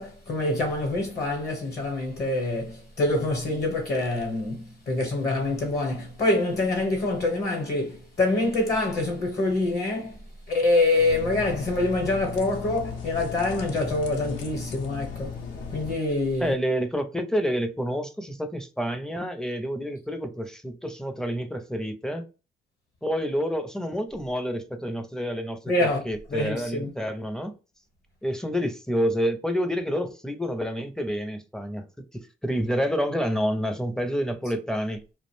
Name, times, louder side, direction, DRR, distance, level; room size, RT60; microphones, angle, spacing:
voice 1, 0.0-10.2 10.5-15.4 15.7-16.5 25.7-26.0 26.3-26.9, left 2 dB, 45° left, 0.9 m, -25 dB
sound 1, 10.9-15.9, left 5 dB, 75° left, 0.6 m, -36 dB
voice 2, 16.4-22.3 23.0-27.5 28.2-31.9 32.1-35.0, equal, 5° left, 0.5 m, -28 dB
2.4 x 2.0 x 3.1 m
cardioid pair, 90°, 20 cm